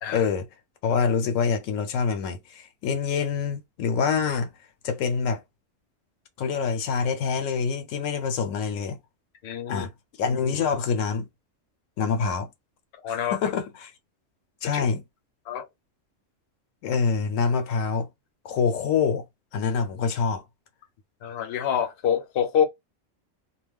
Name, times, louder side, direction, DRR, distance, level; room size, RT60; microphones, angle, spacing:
voice 1, 0.1-0.5 0.8-4.5 4.8-5.4 6.4-9.0 9.7-9.9 10.2-11.3 12.0-12.5 13.1-13.9 14.6-15.0 16.8-18.1 18.4-19.2 19.5-20.4, left 5 dB, 85° left, 1.0 m, -26 dB
voice 2, 9.4-9.9 13.0-13.4 14.7-14.9 15.5-15.7 21.2-22.6, left 8 dB, 60° left, 0.8 m, -26 dB
2.3 x 2.1 x 3.4 m
omnidirectional pair, 1.3 m